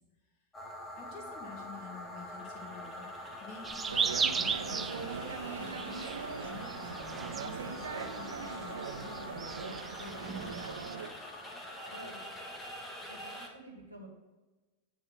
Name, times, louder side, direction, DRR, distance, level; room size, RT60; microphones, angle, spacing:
sound 1, 0.5-13.5, left 1 dB, 15° left, 1.2 m, -44 dB
voice 1, 1.0-6.1 6.4-11.0, left 5 dB, 35° left, -1 dB, 1.6 m, -50 dB
sound 2, 3.6-10.9, right 6 dB, 15° right, 0.3 m, -37 dB
sound 3, 3.9-11.1, right 5 dB, 70° right, 0.6 m, -41 dB
voice 2, 13.1-14.1, right 1 dB, 85° left, -1 dB, 1.6 m, -50 dB
9.5 x 3.2 x 5.8 m, 1.2 s
figure-of-eight pair, 90°, 0 cm